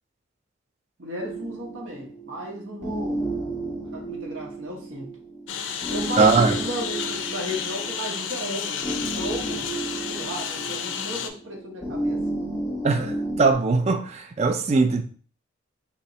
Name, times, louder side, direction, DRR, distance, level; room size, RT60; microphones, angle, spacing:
voice 1, 1.0-3.3 3.9-5.2 5.9-9.7 10.1-12.2, equal, 75° right, 1.3 m, -35 dB
sound 1, 1.2-13.5, right 2 dB, 20° left, 1.7 m, -32 dB
Engine, 5.5-11.3, left 8 dB, 65° left, 0.4 m, -31 dB
voice 2, 6.2-6.6 12.8-15.0, right 4 dB, 30° right, 0.3 m, -20 dB
3.4 x 3.1 x 2.8 m
head